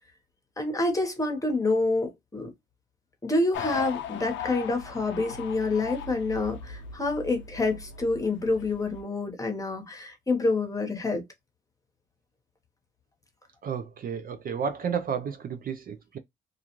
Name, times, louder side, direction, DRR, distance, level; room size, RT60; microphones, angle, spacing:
voice 1, 0.6-2.5 3.2-11.2, left 2 dB, 15° left, 1.0 m, -27 dB
sound 1, 3.5-9.0, left 6 dB, 70° left, 0.5 m, -38 dB
voice 2, 13.6-16.2, right 7 dB, 45° right, 0.4 m, -32 dB
2.4 x 2.3 x 2.9 m
cardioid pair, 90°, 20 cm